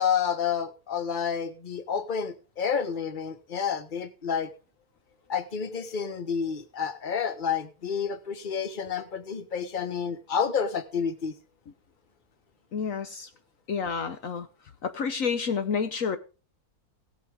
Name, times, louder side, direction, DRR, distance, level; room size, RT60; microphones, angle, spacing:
voice 1, 0.0-4.5 5.3-11.4, left 7 dB, 35° left, 1.4 m, -29 dB
voice 2, 12.7-13.3 13.7-14.5 14.8-16.2, left 6 dB, 65° left, 1.3 m, -29 dB
17.5 x 8.4 x 3.5 m
omnidirectional pair, 1.6 m